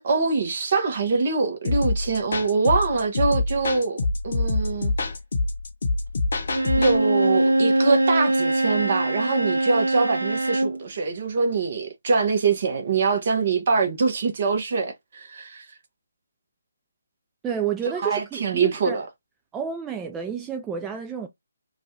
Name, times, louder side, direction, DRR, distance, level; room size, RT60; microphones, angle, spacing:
voice 1, 0.0-4.9 6.8-15.6 18.0-19.1, right 4 dB, 45° right, 1.1 m, -24 dB
sound 1, 1.6-7.0, left 3 dB, 55° left, 0.8 m, -25 dB
Bowed string instrument, 6.5-10.8, right 1 dB, 80° right, 0.5 m, -22 dB
voice 2, 17.4-19.0 19.5-21.3, right 7 dB, 10° right, 0.3 m, -30 dB
3.1 x 2.4 x 2.7 m
figure-of-eight pair, 145°, 0 cm